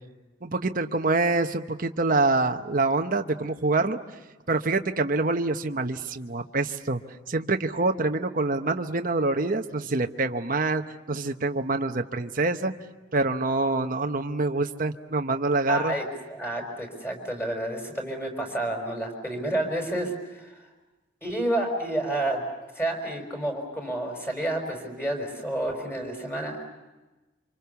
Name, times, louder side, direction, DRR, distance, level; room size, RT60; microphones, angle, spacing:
voice 1, 0.4-4.0 4.5-7.0 7.3-10.8 11.1-12.7 13.1-15.9, right 3 dB, 45° right, 6 dB, 1.0 m, -26 dB
voice 2, 15.7-16.0 16.3-20.6 21.2-22.4 22.7-26.7, right 1 dB, 10° left, 3 dB, 5.5 m, -30 dB
28.5 x 26.0 x 7.0 m, 1.1 s
head